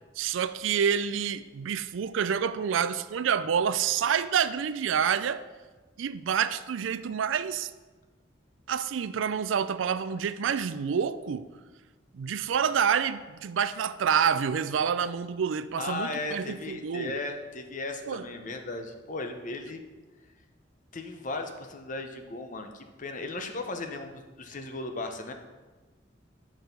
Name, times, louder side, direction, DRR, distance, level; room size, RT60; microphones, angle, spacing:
voice 1, 0.2-5.5 6.0-7.7 8.7-11.5 12.1-17.1 18.1-18.3, right 7 dB, 80° right, 14 dB, 0.4 m, -28 dB
voice 2, 15.8-19.8 20.9-25.3, left 2 dB, 45° left, 6 dB, 0.8 m, -36 dB
6.6 x 6.1 x 5.3 m, 1.3 s
head